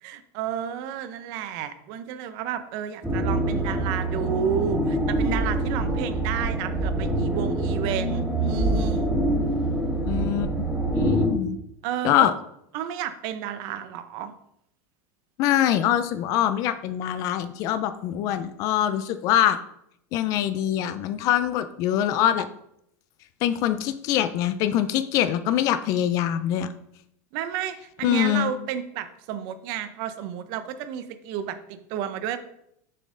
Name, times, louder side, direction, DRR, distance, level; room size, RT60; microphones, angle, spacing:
voice 1, 0.0-9.2 11.8-12.3 12.7-14.3 27.3-32.4, right 9 dB, 50° right, 11 dB, 0.6 m, -31 dB
sound 1, 3.0-11.3, right 1 dB, ahead, 1.1 m, -25 dB
voice 2, 10.0-10.5 10.9-11.6 12.0-12.3 15.4-19.6 20.1-22.5 23.4-26.7 28.0-28.5, left 11 dB, 40° left, 12 dB, 0.4 m, -23 dB
6.5 x 4.1 x 3.7 m, 0.75 s
supercardioid pair, 160°, 9 cm